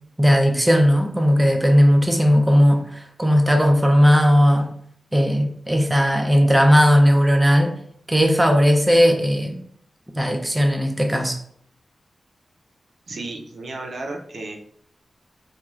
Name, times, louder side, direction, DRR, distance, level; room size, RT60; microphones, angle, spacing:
voice 1, 0.2-4.7 5.1-7.7 8.1-9.6 10.1-11.4, equal, 10° right, 3 dB, 0.4 m, -17 dB
voice 2, 13.1-14.5, right 2 dB, 65° right, 1 dB, 0.5 m, -33 dB
3.1 x 2.3 x 2.3 m, 0.65 s
wide cardioid pair, 95°, 0 cm